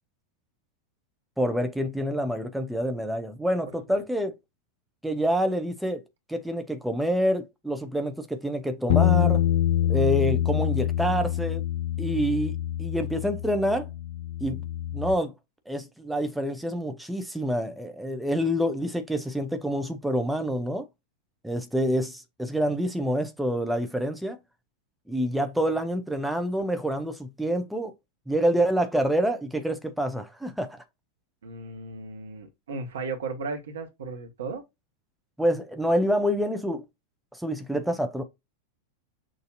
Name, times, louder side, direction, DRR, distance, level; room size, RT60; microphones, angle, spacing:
voice 1, 1.4-4.4 5.0-6.0 6.3-9.4 9.8-11.6 12.0-13.9 14.4-14.6 14.9-15.3 15.7-20.9 21.4-24.4 25.1-27.9 28.3-30.8 35.4-36.8 37.3-38.2, equal, ahead, 0.6 m, -27 dB
Bass guitar, 8.9-15.1, left 12 dB, 55° left, 0.3 m, -25 dB
voice 2, 31.4-34.6, right 4 dB, 65° right, 1.2 m, -35 dB
6.3 x 2.6 x 2.5 m
figure-of-eight pair, 90°, 0 cm